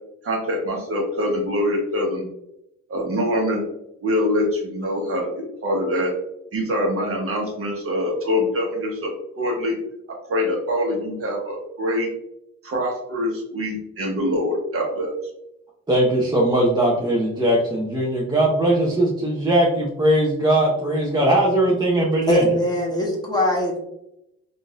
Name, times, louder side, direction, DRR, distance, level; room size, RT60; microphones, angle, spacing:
voice 1, 0.2-2.2 2.9-3.6 4.0-6.1 6.5-9.1 9.4-9.7 10.3-12.1 12.6-15.1, left 1 dB, 50° right, -1 dB, 1.1 m, -24 dB
voice 2, 15.9-22.5, right 1 dB, 15° right, -3 dB, 0.6 m, -20 dB
voice 3, 22.3-23.8, left 1 dB, 15° left, -2 dB, 0.8 m, -21 dB
3.7 x 2.6 x 2.4 m, 0.83 s
cardioid pair, 90°, 30 cm